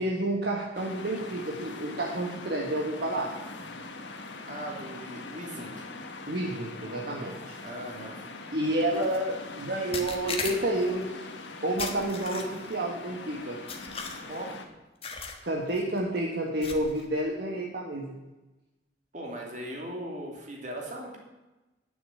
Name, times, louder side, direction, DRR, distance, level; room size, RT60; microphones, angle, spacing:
voice 1, 0.0-3.3 6.3-7.5 8.5-11.2 11.6-13.6 15.4-18.2, right 1 dB, 60° right, 0 dB, 1.4 m, -30 dB
sound 1, 0.7-14.7, left 3 dB, 85° left, 1.4 m, -42 dB
voice 2, 4.5-5.9 7.6-8.2 14.3-14.5 19.1-21.2, right 1 dB, 40° right, -1 dB, 2.8 m, -38 dB
sound 2, 8.9-9.2 9.9-10.9 11.8-12.7 13.7-14.5 15.0-15.4 15.7-16.0 16.6-17.1, left 5 dB, 30° left, 1.3 m, -37 dB
9.8 x 7.1 x 9.2 m, 1.1 s
head